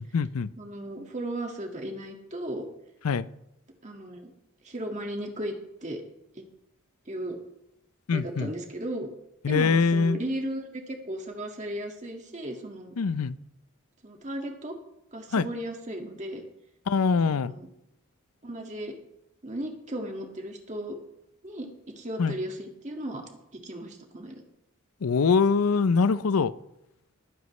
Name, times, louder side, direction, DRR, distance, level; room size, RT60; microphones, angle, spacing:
voice 1, 0.0-0.5 3.0-3.3 8.1-8.5 9.4-10.2 13.0-13.4 15.3-15.5 16.9-17.5 22.2-22.4 25.0-26.5, left 5 dB, 90° left, 16 dB, 0.5 m, -23 dB
voice 2, 0.6-2.7 3.8-4.3 4.6-5.6 5.8-6.0 6.3-6.4 7.1-7.4 8.1-9.1 9.5-12.9 14.0-14.8 15.1-16.4 17.3-17.7 18.4-18.9 19.4-21.0 21.4-24.4, right 1 dB, 35° right, 2 dB, 1.9 m, -36 dB
21.0 x 9.4 x 3.2 m, 0.83 s
head